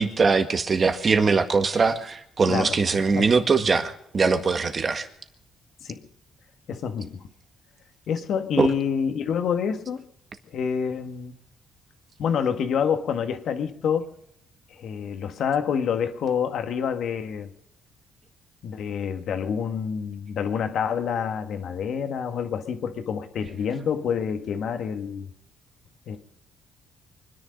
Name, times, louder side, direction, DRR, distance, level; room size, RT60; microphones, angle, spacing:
voice 1, 0.0-5.1 8.6-8.7, right 4 dB, 40° right, 8 dB, 1.8 m, -22 dB
voice 2, 6.7-7.3 8.1-10.0 10.5-11.3 12.2-14.0 14.8-17.5 18.6-25.3 26.1-26.2, left 7 dB, 70° left, 7 dB, 1.6 m, -27 dB
25.0 x 10.5 x 5.3 m, 0.75 s
cardioid pair, 90°, 0 cm